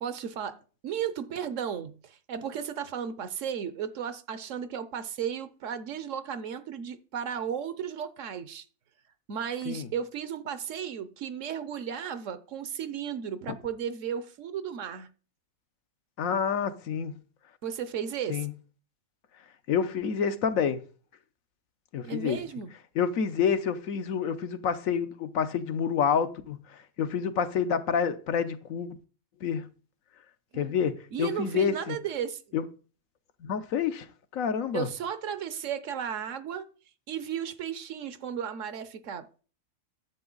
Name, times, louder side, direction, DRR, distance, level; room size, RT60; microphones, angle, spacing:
voice 1, 0.0-8.6 9.3-15.1 17.6-18.5 22.0-22.7 30.5-30.7 31.1-32.6 34.7-36.7 37.1-39.4, right 8 dB, 65° right, 1.1 m, -34 dB
voice 2, 16.2-17.1 18.3-18.5 19.7-20.8 21.9-22.4 23.0-26.6 27.0-28.9 29.4-29.6 30.5-32.0 32.5-32.6 33.4-34.1 34.3-34.9, left 7 dB, 75° left, 1.2 m, -28 dB
10.5 x 7.9 x 3.9 m
omnidirectional pair, 1.4 m